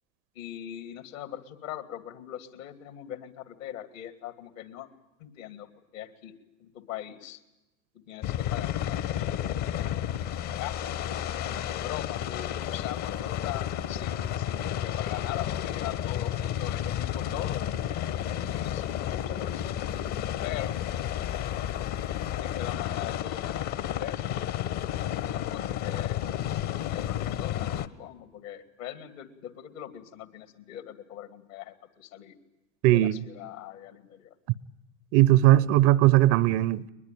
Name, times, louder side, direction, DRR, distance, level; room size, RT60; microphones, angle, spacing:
voice 1, 0.3-4.9 5.2-7.4 7.9-10.0 10.3-10.9 11.4-18.0 18.3-19.7 20.4-20.8 22.4-24.3 25.0-26.2 26.9-32.3 32.9-34.3, left 12 dB, 65° left, 2.6 m, -41 dB
sound 1, 8.2-27.9, left 10 dB, 45° left, 1.2 m, -31 dB
voice 2, 32.8-33.2 35.1-36.9, right 15 dB, 45° right, 0.7 m, -19 dB
22.0 x 21.0 x 9.1 m
hypercardioid pair, 85°, 41 cm